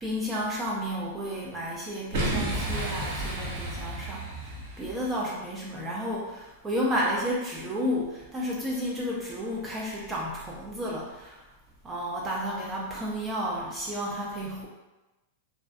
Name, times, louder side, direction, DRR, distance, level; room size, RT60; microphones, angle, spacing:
voice 1, 0.0-11.4 11.8-14.7, equal, 15° right, -4 dB, 0.3 m, -32 dB
Boom, 2.1-5.1, right 1 dB, 60° right, 0.7 m, -32 dB
2.5 x 2.2 x 2.3 m, 1.0 s
supercardioid pair, 150°, 0 cm